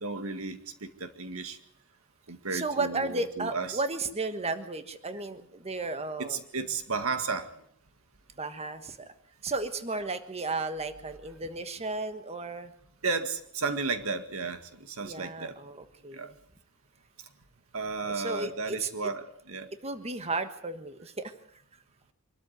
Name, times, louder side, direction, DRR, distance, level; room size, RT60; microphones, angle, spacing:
voice 1, 0.0-1.6 2.3-3.8 6.2-7.5 13.0-15.6 16.1-16.3 17.7-19.7, right 4 dB, 90° right, 8 dB, 2.0 m, -33 dB
voice 2, 2.5-6.4 8.4-9.1 9.4-12.7 15.0-16.3 18.1-18.9 19.8-21.6, right 3 dB, 30° right, 9 dB, 1.4 m, -34 dB
25.0 x 13.0 x 9.5 m, 0.68 s
head